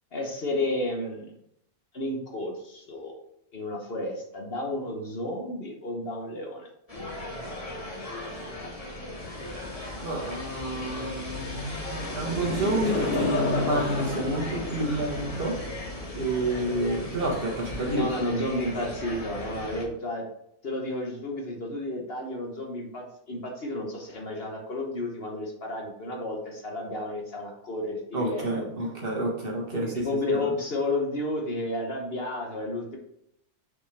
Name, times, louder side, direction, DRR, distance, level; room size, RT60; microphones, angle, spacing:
voice 1, 0.1-1.3 1.9-3.1 3.5-6.7 17.9-20.2 20.6-28.7 29.7-33.0, left 1 dB, 45° left, 0 dB, 1.2 m, -32 dB
sound 1, 6.9-19.9, left 1 dB, 25° left, 1.2 m, -38 dB
sound 2, 9.2-17.9, left 2 dB, 60° left, 2.1 m, -34 dB
voice 2, 10.0-15.6 16.2-18.3 28.1-30.0 30.4-30.5, right 1 dB, 40° right, -1 dB, 1.7 m, -29 dB
6.1 x 5.0 x 3.4 m, 0.75 s
omnidirectional pair, 1.6 m